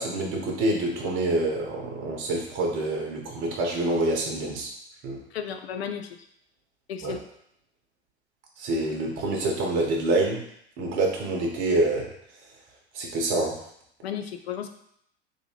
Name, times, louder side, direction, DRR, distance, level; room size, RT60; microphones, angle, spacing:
voice 1, 0.0-4.7 5.0-5.2 7.0-7.1 8.6-10.4 10.8-12.1 12.9-13.6, right 2 dB, 35° right, 0 dB, 0.9 m, -26 dB
voice 2, 5.3-6.2 6.9-7.2 14.0-14.7, left 8 dB, 65° left, 7 dB, 0.5 m, -33 dB
3.5 x 3.0 x 2.9 m, 0.71 s
figure-of-eight pair, 85°, 34 cm